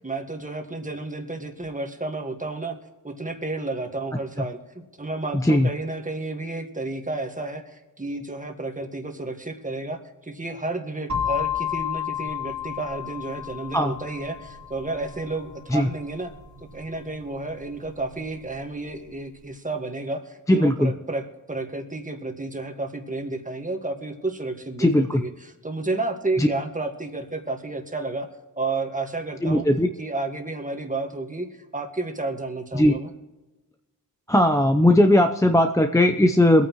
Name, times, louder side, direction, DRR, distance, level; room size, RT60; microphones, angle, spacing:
voice 1, 0.0-2.8 3.0-16.3 16.6-28.3 28.6-29.6 30.0-31.5 31.7-33.1, right 2 dB, 20° right, 4 dB, 1.7 m, -31 dB
sound 1, 11.1-18.9, left 8 dB, 55° right, 2.5 m, -33 dB
voice 2, 20.5-20.9 24.8-25.2 26.4-26.5 29.4-29.9 32.7-33.0 34.3-36.7, left 1 dB, 10° left, 6 dB, 0.6 m, -18 dB
24.0 x 9.2 x 3.1 m, 1.1 s
wide cardioid pair, 120°, 35 cm